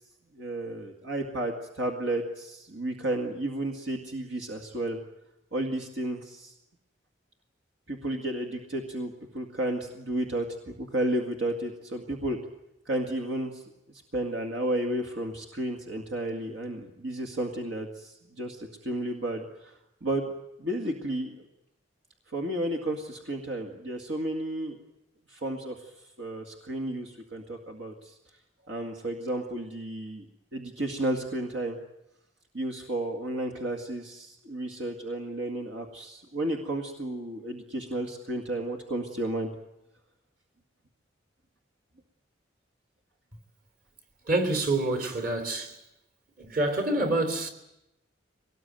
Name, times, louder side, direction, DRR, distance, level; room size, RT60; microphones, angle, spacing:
voice 1, 0.4-5.0 5.5-6.5 7.9-12.4 12.9-13.6 14.1-20.3 20.6-21.4 22.3-24.8 25.3-25.9 26.2-28.1 28.7-30.3 30.5-31.8 32.5-39.5, right 1 dB, 70° right, 2.1 m, -32 dB
voice 2, 44.3-45.8 46.4-47.5, right 2 dB, 45° right, 3.2 m, -27 dB
22.5 x 19.0 x 9.1 m
head